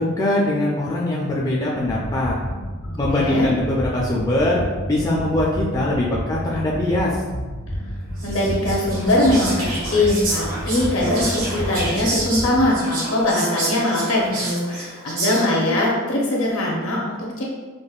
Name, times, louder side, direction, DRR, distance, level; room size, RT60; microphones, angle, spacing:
voice 1, 0.0-2.3 3.0-4.6 4.9-7.1, left 1 dB, 15° left, -5 dB, 0.3 m, -22 dB
sound 1, 1.9-12.7, equal, 90° left, 1.4 m, -30 dB
voice 2, 2.8-3.5 8.2-17.4, left 1 dB, 65° left, -3 dB, 0.8 m, -21 dB
Whispering, 8.2-15.7, right 2 dB, 90° right, 1.4 m, -29 dB
5.1 x 2.1 x 2.4 m, 1.3 s
head